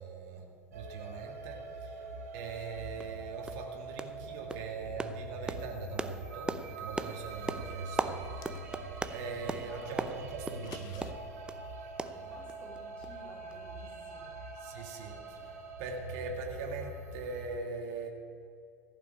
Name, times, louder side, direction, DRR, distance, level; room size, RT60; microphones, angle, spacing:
voice 1, 0.0-2.0 2.3-8.2 9.1-11.2 14.6-15.4 15.8-18.1, right 4 dB, 60° right, 1 dB, 1.7 m, -41 dB
sound 1, 0.7-17.5, right 3 dB, 75° right, 2.8 m, -44 dB
voice 2, 2.0-2.3 9.5-10.0 12.0-14.3 14.8-14.9 15.3-15.7, left 1 dB, 10° left, -4 dB, 3.7 m, -55 dB
sound 2, 2.5-2.6 3.0-3.2 3.5-3.7 4.0-4.2 4.5-11.6 12.0-12.8 13.0-13.2 13.5-13.6, right 3 dB, 10° right, 0.6 m, -39 dB
sound 3, 8.1-9.1 10.4-11.1, left 6 dB, 45° left, 1.2 m, -51 dB
15.5 x 5.9 x 8.8 m, 2.5 s
hypercardioid pair, 85°, 9 cm